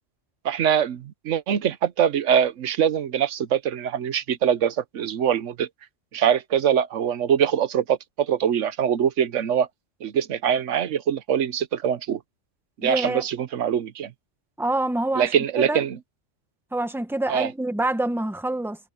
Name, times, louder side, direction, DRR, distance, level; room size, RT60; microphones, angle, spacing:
voice 1, 0.4-5.7 6.1-9.7 10.0-12.2 12.8-14.1 15.1-16.0 17.3-17.5, right 8 dB, 85° right, 1.2 m, -23 dB
voice 2, 12.8-13.2 14.6-15.3 15.6-15.8 16.7-18.8, right 2 dB, ahead, 1.3 m, -26 dB
omnidirectional pair, 1.2 m